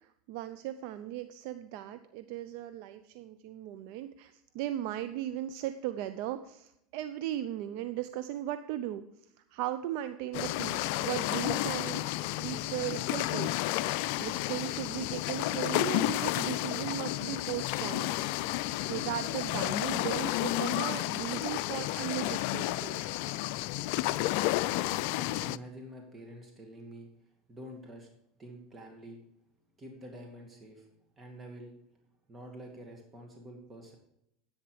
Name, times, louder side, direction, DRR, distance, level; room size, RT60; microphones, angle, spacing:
voice 1, 0.0-9.0 9.5-23.1, right 12 dB, 65° right, 11 dB, 0.5 m, -37 dB
sound 1, 10.3-25.6, left 17 dB, 65° left, 0.3 m, -31 dB
voice 2, 24.7-28.1 28.4-29.2 29.8-30.9 31.2-31.7 32.3-34.0, right 1 dB, 25° right, 1 dB, 2.3 m, -47 dB
10.5 x 8.6 x 5.0 m, 0.78 s
hypercardioid pair, 95°, 0 cm